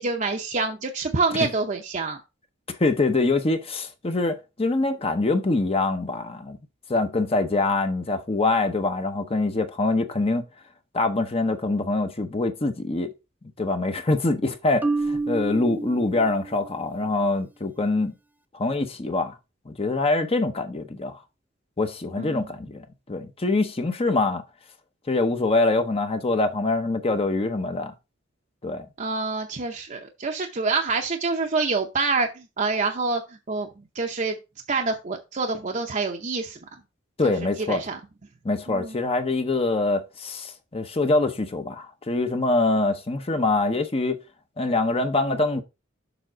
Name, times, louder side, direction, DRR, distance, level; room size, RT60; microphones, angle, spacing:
voice 1, 0.0-2.2 22.2-22.4 29.0-33.7 33.9-34.3 34.7-36.6 37.2-37.3 37.7-38.0 38.7-39.0, right 3 dB, 40° right, 0.7 m, -26 dB
voice 2, 2.8-6.6 6.9-10.4 10.9-13.1 13.6-18.1 18.5-19.3 19.7-21.2 21.8-24.4 25.1-27.9 28.6-28.9 37.2-37.8 38.4-44.2 44.6-45.6, left 2 dB, 30° left, 0.8 m, -24 dB
Marimba xylophone, 14.8-16.9, right 3 dB, 10° right, 0.5 m, -29 dB
7.0 x 3.7 x 6.0 m
head